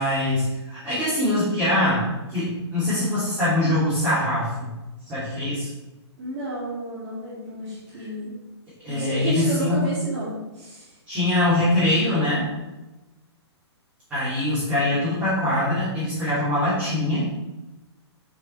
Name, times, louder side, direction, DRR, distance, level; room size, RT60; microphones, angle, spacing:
voice 1, 0.0-4.7 5.1-5.7 8.8-9.9 11.1-12.5 14.1-17.3, left 1 dB, 10° right, -15 dB, 3.4 m, -23 dB
voice 2, 6.2-8.4 8.9-10.9, right 1 dB, 25° right, -12 dB, 2.7 m, -31 dB
7.7 x 6.7 x 4.9 m, 1.0 s
hypercardioid pair, 180°, 15 cm